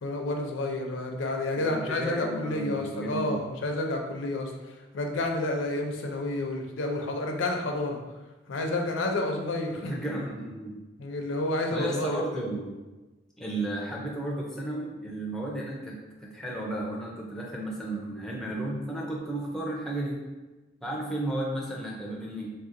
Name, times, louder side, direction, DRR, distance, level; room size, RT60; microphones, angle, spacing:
voice 1, 0.0-8.0 8.5-9.9 11.0-12.4, left 2 dB, 80° left, 2 dB, 0.5 m, -30 dB
voice 2, 1.5-3.4 9.8-10.8 11.7-12.8 13.4-15.9 16.2-20.2 20.8-22.5, right 1 dB, 5° left, -3 dB, 0.4 m, -33 dB
3.2 x 2.7 x 2.5 m, 1.2 s
head